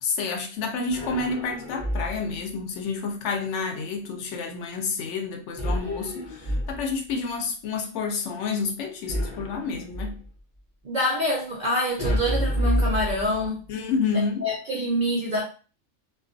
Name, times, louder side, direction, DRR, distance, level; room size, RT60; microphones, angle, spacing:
voice 1, 0.0-10.2 13.7-14.5, left 4 dB, 70° left, 0.8 m, -29 dB
sound 1, 0.9-2.4 5.6-7.1 9.1-10.3 12.0-13.7, equal, 35° left, 0.7 m, -28 dB
voice 2, 10.8-13.6 14.4-15.4, equal, 60° right, 0.4 m, -26 dB
2.3 x 2.2 x 2.5 m
omnidirectional pair, 1.3 m